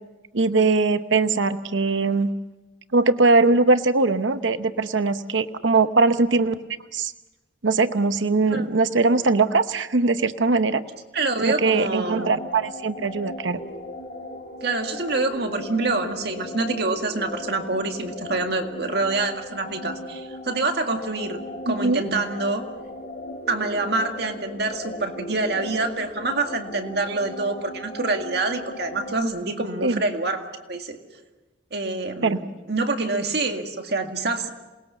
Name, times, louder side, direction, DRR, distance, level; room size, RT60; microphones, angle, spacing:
voice 1, 0.3-2.3 2.9-6.6 6.9-7.1 7.6-10.8 11.4-13.6 21.7-22.0 29.8-30.0 32.2-32.4, right 3 dB, 85° right, 10 dB, 0.9 m, -21 dB
voice 2, 11.1-12.3 14.6-21.4 21.7-22.6 23.5-31.0 31.7-34.5, right 3 dB, 60° right, 4 dB, 2.0 m, -26 dB
sound 1, 11.6-29.2, left 1 dB, 50° left, 3.5 m, -37 dB
27.5 x 20.0 x 7.0 m, 1.2 s
head